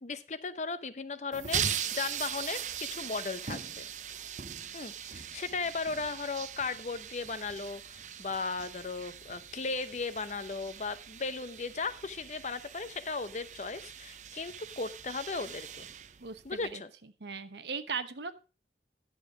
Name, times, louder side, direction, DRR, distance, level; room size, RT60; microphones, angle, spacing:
voice 1, 0.0-3.9 4.7-15.9 16.4-16.9, left 4 dB, 40° left, 13 dB, 0.7 m, -36 dB
sound 1, 1.3-16.7, right 8 dB, 45° right, 0.6 m, -40 dB
voice 2, 16.2-16.8 17.2-18.3, right 5 dB, 75° right, 11 dB, 1.0 m, -38 dB
11.0 x 7.2 x 4.9 m, 0.34 s
head